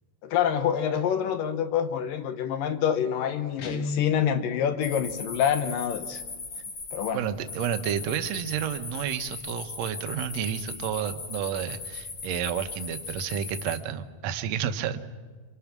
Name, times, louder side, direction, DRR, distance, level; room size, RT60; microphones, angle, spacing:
voice 1, 0.2-6.2 6.9-7.2, left 9 dB, 75° left, 8 dB, 2.7 m, -26 dB
Guitar, 3.6-4.4, left 3 dB, 60° left, 1.7 m, -32 dB
sound 1, 4.8-13.8, left 4 dB, 40° left, 2.7 m, -39 dB
voice 2, 7.1-15.0, right 9 dB, 70° right, 9 dB, 1.7 m, -31 dB
27.0 x 25.5 x 6.0 m, 1.5 s
omnidirectional pair, 4.1 m